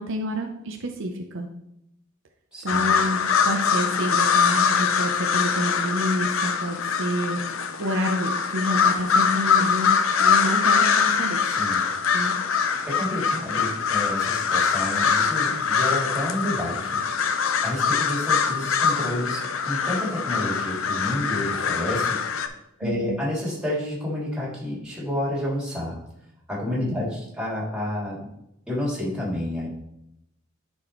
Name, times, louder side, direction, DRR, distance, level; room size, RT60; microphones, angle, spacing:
voice 1, 0.0-1.5 2.6-9.9 10.2-11.4 12.1-12.4 22.8-23.2 26.8-27.0, equal, 65° right, 4 dB, 0.7 m, -29 dB
voice 2, 2.5-3.0 11.4-11.9 12.9-17.0 17.6-22.5 22.8-26.0 26.5-28.2 28.7-29.7, left 1 dB, 5° right, -6 dB, 2.8 m, -30 dB
sound 1, 2.7-22.5, left 6 dB, 70° left, 0.6 m, -23 dB
10.5 x 4.5 x 3.1 m, 0.83 s
head